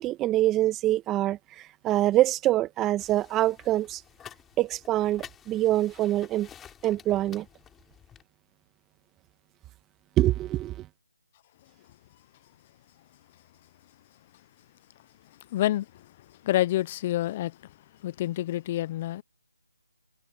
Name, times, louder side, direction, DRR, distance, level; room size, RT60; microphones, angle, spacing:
voice 1, 0.0-4.0 4.6-6.5 6.8-7.4 10.2-10.9, right 14 dB, 10° right, 1.5 m, -25 dB
sound 1, 3.0-8.2, left 9 dB, 10° left, 4.1 m, -51 dB
voice 2, 15.5-15.9 16.4-17.6 18.0-19.2, left 14 dB, 25° left, 0.7 m, -27 dB
figure-of-eight pair, 160°, 0 cm